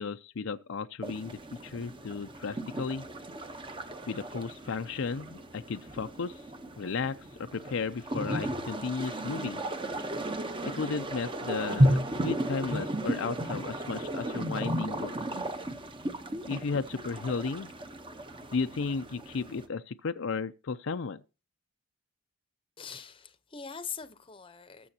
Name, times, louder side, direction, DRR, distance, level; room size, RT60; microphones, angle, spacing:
voice 1, 0.0-3.0 4.1-6.4 6.8-9.6 10.6-15.1 16.4-17.7 18.5-21.2, left 4 dB, 60° left, 0.5 m, -34 dB
sound 1, 1.0-19.7, right 1 dB, 25° right, 0.9 m, -34 dB
voice 2, 22.8-24.9, left 6 dB, 25° left, 0.8 m, -42 dB
20.0 x 7.0 x 2.8 m
head